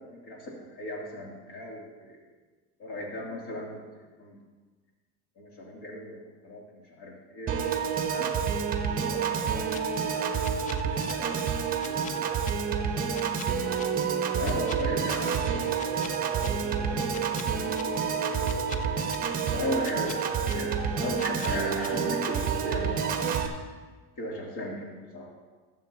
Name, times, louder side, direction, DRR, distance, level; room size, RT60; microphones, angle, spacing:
voice 1, 0.0-2.2 2.8-4.4 5.4-6.2 6.4-7.7 8.1-8.3 14.3-15.7 19.5-23.4 24.2-25.3, left 1 dB, 75° left, -3 dB, 2.9 m, -36 dB
Piano / Organ, 7.5-23.5, right 6 dB, 30° right, 1.0 m, -28 dB
voice 2, 9.0-13.4 16.2-18.5, right 2 dB, 15° right, -4 dB, 3.5 m, -45 dB
sound 1, 9.5-9.8 10.4-11.1 11.8-12.5 13.1-13.8 14.4-15.1 15.7-16.5 17.1-17.8 18.4-19.2 19.8-20.5 21.1-21.9, left 7 dB, 25° left, 0.3 m, -43 dB
20.0 x 7.2 x 2.9 m, 1.4 s
cardioid pair, 160°, 30 cm